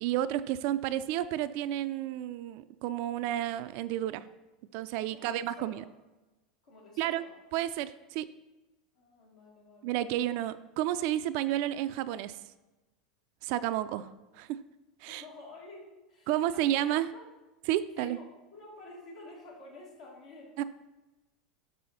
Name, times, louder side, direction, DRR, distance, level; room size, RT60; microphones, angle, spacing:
voice 1, 0.0-4.3 4.7-5.8 7.0-7.2 7.5-8.3 9.8-12.4 13.4-14.1 14.3-14.6 15.0-15.2 16.3-17.1 17.7-18.2 20.6-20.7, right 13 dB, 55° right, 12 dB, 0.3 m, -31 dB
voice 2, 5.1-5.8 6.6-7.4 8.9-10.2 15.1-16.8 17.1-17.2 18.0-20.6, left 2 dB, 75° left, -6 dB, 2.3 m, -50 dB
6.1 x 5.5 x 4.3 m, 1.1 s
figure-of-eight pair, 85°, 4 cm